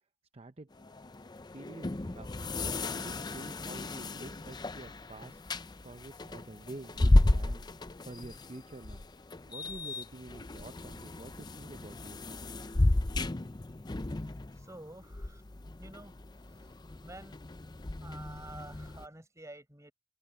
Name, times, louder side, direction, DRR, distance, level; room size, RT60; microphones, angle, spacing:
voice 1, 0.3-0.7 1.5-2.3 2.9-7.6 8.0-9.0 9.5-12.5, right 2 dB, 30° right, 0.7 m, -48 dB
sound 1, 0.7-19.0, left 2 dB, 25° left, 0.5 m, -33 dB
voice 2, 14.5-15.4 15.8-16.1 16.5-16.7 17.0-17.4 18.0-19.9, right 2 dB, 15° right, 6.0 m, -49 dB
open air
head